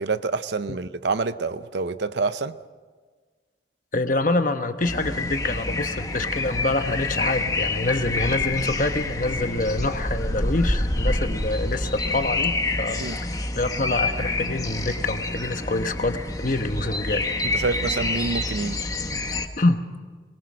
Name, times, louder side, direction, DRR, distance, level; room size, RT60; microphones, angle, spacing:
voice 1, 0.0-2.6 13.0-13.2 17.5-18.8, right 4 dB, 70° right, 0.7 m, -27 dB
voice 2, 3.9-17.2 19.6-19.8, left 2 dB, 45° left, 1.1 m, -26 dB
sound 1, 4.8-19.5, left 2 dB, 20° left, 1.1 m, -27 dB
22.0 x 21.5 x 6.3 m
head